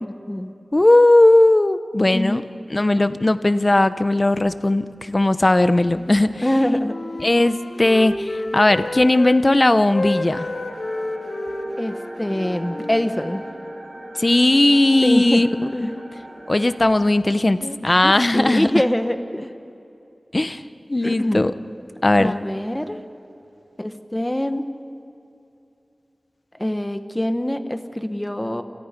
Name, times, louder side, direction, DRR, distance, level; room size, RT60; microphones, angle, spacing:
voice 1, 0.0-0.5 2.1-2.4 3.1-3.2 6.4-6.9 11.8-13.4 15.0-16.0 17.6-19.5 21.0-21.5 22.2-23.0 23.8-24.7 26.5-28.6, left 1 dB, 15° left, 8 dB, 1.4 m, -24 dB
voice 2, 0.7-2.4 2.7-6.3 7.2-10.5 14.2-15.9 16.5-18.7 20.3-20.6 20.9-21.5 22.0-22.4, left 2 dB, 30° left, 12 dB, 0.9 m, -17 dB
Wind instrument woodwind instrument, 6.4-9.4 9.9-13.7, left 2 dB, 55° left, 1.8 m, -31 dB
sound 1, 10.2-16.7, equal, 45° right, 7.0 m, -37 dB
29.0 x 28.5 x 5.3 m, 2.6 s
wide cardioid pair, 80°, 0 cm